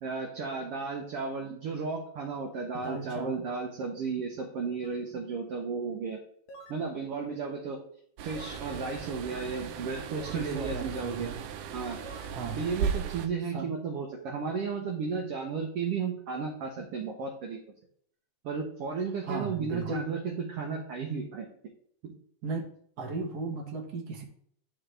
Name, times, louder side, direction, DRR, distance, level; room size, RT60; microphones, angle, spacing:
voice 1, 0.0-6.2 6.7-7.8 8.2-11.3 11.7-12.0 12.6-17.6 18.4-21.5 22.0-22.1, right 5 dB, 65° right, 1 dB, 1.5 m, -34 dB
voice 2, 2.7-3.5 10.3-11.4 12.3-12.6 13.5-13.7 19.2-20.0 22.4-22.7 23.0-24.2, right 4 dB, 45° right, 1 dB, 1.3 m, -36 dB
sound 1, 4.8-5.0 6.5-6.9 8.3-8.7 10.2-10.6 12.0-12.3, right 2 dB, 65° left, 1.7 m, -48 dB
sound 2, 8.2-13.3, right 7 dB, 85° right, 2.1 m, -36 dB
11.0 x 4.0 x 3.3 m, 0.62 s
omnidirectional pair, 3.6 m